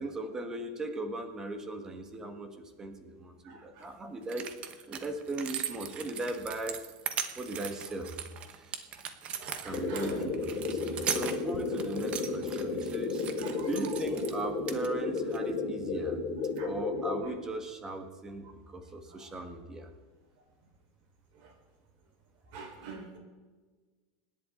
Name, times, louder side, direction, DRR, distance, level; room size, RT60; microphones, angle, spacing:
voice 1, 0.0-4.5 4.9-6.8 7.4-8.1 8.5-8.8 9.6-13.2 13.6-16.2 16.6-19.9, right 2 dB, 15° right, 5 dB, 1.7 m, -38 dB
voice 2, 3.4-3.8 9.4-10.2 13.4-13.7 16.6-16.7 22.5-23.2, right 5 dB, 55° right, 1 dB, 4.8 m, -44 dB
sound 1, 3.8-3.9 4.2-14.4 14.7-15.4 16.4-16.6, right 8 dB, 30° right, 1.1 m, -39 dB
sound 2, 9.7-17.2, left 4 dB, 30° left, 6.3 m, -33 dB
26.0 x 10.5 x 4.0 m, 1.4 s
supercardioid pair, 155°, 4 cm